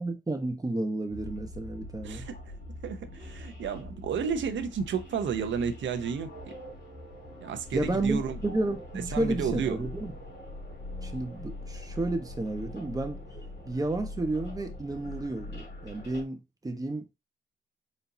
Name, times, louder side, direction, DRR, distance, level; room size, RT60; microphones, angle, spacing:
voice 1, 0.0-2.3 7.7-10.1 11.0-13.2 13.6-17.0, right 2 dB, 20° right, 1.1 m, -31 dB
sound 1, 1.1-16.2, left 2 dB, 60° left, 2.6 m, -42 dB
voice 2, 2.0-6.5 7.4-8.4 9.0-9.8, right 7 dB, 75° right, 0.7 m, -32 dB
4.3 x 3.9 x 2.7 m
cardioid pair, 85°, 19 cm